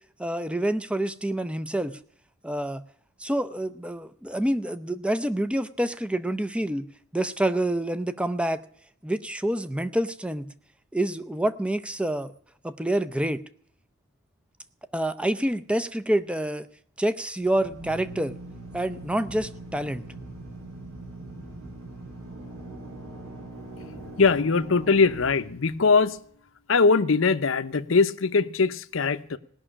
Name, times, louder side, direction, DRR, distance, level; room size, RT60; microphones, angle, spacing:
voice 1, 0.2-2.0 2.4-2.8 3.2-6.9 7.1-8.6 9.0-10.5 10.9-12.3 12.6-13.4 14.9-16.7 17.0-18.4 18.7-20.0, right 1 dB, 5° right, 0.5 m, -27 dB
Drill, 17.5-26.1, right 2 dB, 70° right, 5.9 m, -41 dB
voice 2, 24.2-26.2 26.7-29.4, left 4 dB, 65° left, 0.7 m, -21 dB
18.0 x 6.2 x 9.8 m
head